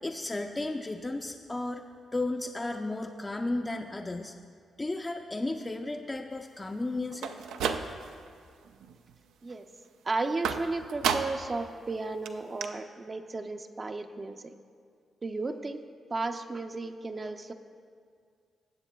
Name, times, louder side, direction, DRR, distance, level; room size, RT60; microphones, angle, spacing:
voice 1, 0.0-1.8 2.1-4.3 4.8-7.3, left 2 dB, 25° left, 3 dB, 0.5 m, -34 dB
sound 1, 7.1-8.3 8.7-9.2 10.4-11.6 11.9-12.0 12.3-12.4 12.6-12.7, right 7 dB, 90° right, 0.4 m, -32 dB
voice 2, 10.1-14.4 15.2-15.8 16.1-17.5, right 3 dB, 40° right, 6 dB, 0.5 m, -34 dB
17.0 x 7.2 x 2.3 m, 2.1 s
supercardioid pair, 55°, 0 cm